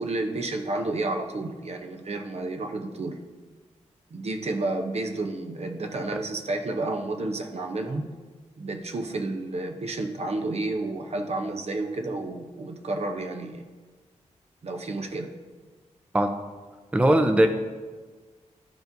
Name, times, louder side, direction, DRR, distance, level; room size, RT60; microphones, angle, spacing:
voice 1, 0.0-3.2 4.1-8.1 8.6-13.6 14.6-15.3, right 2 dB, 55° right, 4 dB, 0.7 m, -31 dB
voice 2, 16.9-17.5, right 1 dB, 10° right, 6 dB, 0.5 m, -19 dB
10.5 x 4.8 x 2.6 m, 1.4 s
cardioid pair, 60°, 13 cm